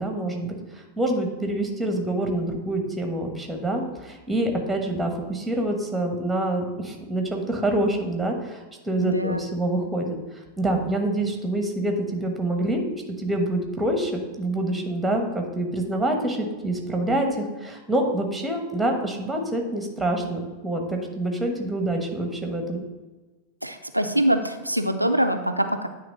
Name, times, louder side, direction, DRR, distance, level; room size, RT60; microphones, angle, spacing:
voice 1, 0.0-12.8 13.2-22.8, right 1 dB, 5° right, 3 dB, 1.2 m, -26 dB
voice 2, 9.0-9.4 23.6-25.9, right 1 dB, 90° right, 6 dB, 0.4 m, -24 dB
9.3 x 3.2 x 5.3 m, 1.2 s
figure-of-eight pair, 90°, 0 cm